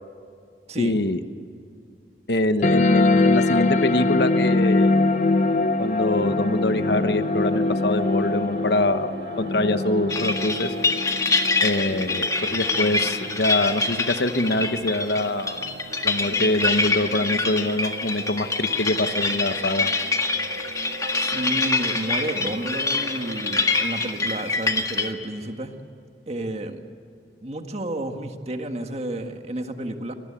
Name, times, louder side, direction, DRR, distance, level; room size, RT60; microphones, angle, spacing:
voice 1, 0.8-1.2 2.3-4.9 5.8-9.1 9.4-10.7 11.6-15.7 16.0-19.9, left 1 dB, 65° left, 10 dB, 1.2 m, -24 dB
sound 1, 2.6-13.6, left 3 dB, 45° left, 0.8 m, -23 dB
sound 2, 4.8-23.9, right 2 dB, 70° right, 1.6 m, -40 dB
sound 3, 10.1-25.1, left 3 dB, 20° left, 1.8 m, -25 dB
voice 2, 21.2-25.7 26.3-26.8 27.4-30.1, right 1 dB, 35° right, 6 dB, 1.7 m, -31 dB
26.0 x 19.5 x 8.7 m, 2.5 s
head